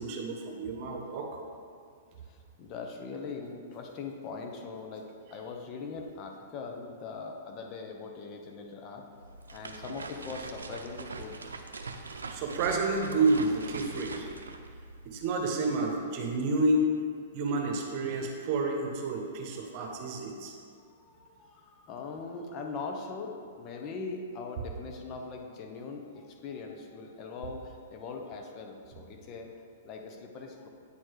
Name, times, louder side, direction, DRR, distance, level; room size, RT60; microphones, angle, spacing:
voice 1, 0.0-1.4 12.3-14.3 15.0-16.9 17.3-20.5, right 2 dB, 45° right, 2 dB, 1.2 m, -29 dB
voice 2, 2.2-9.1 9.5-11.4 20.8-29.5 29.8-30.7, left 4 dB, 35° left, 2 dB, 0.9 m, -41 dB
sound 1, 9.1-15.5, right 3 dB, 85° right, 0.5 m, -43 dB
8.7 x 4.5 x 4.7 m, 2.2 s
hypercardioid pair, 115°, 0 cm